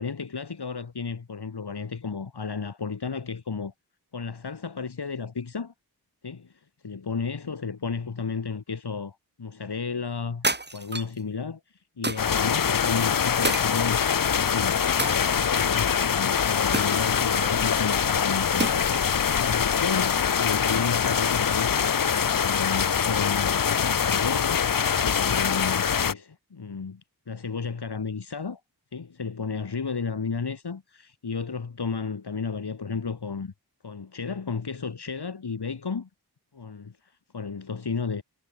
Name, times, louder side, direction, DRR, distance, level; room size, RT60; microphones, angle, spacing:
voice 1, 0.0-3.7 4.1-5.7 6.2-10.5 10.7-14.8 15.3-18.9 19.4-28.6 28.9-33.5 33.8-36.1 36.5-38.2, left 5 dB, 90° left, 6.1 m, -33 dB
sound 1, 10.4-11.2 12.0-12.5 13.4-14.3 15.0-15.7 16.7-17.6 18.6-19.1, right 2 dB, 25° right, 1.8 m, -30 dB
sound 2, 12.2-26.1, left 7 dB, 60° left, 0.8 m, -24 dB
wide cardioid pair, 75°, 38 cm